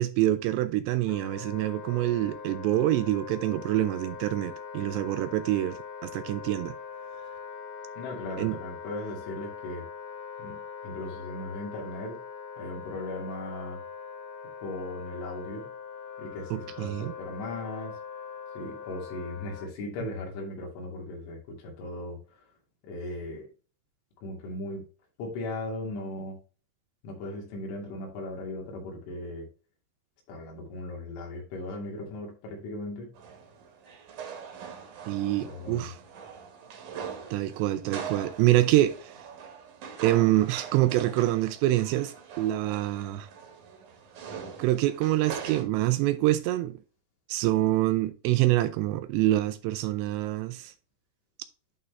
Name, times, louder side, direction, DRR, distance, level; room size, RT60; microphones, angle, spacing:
voice 1, 0.0-6.7 8.4-8.6 16.5-17.1 35.1-36.0 37.3-39.1 40.0-43.3 44.6-46.8 47.3-50.7, right 15 dB, 80° right, 2.6 m, -26 dB
Wind instrument woodwind instrument, 1.1-19.7, left 6 dB, 70° left, 2.5 m, -42 dB
voice 2, 8.0-9.8 10.4-12.2 12.6-13.8 14.6-15.7 16.2-18.0 18.5-22.5 22.8-23.5 24.2-24.8 25.2-26.4 27.0-29.5 30.3-33.1 35.3-35.9, left 2 dB, 90° left, 4.9 m, -38 dB
sound 1, 33.1-45.6, right 6 dB, 60° right, 2.3 m, -42 dB
11.0 x 4.1 x 3.3 m
omnidirectional pair, 5.3 m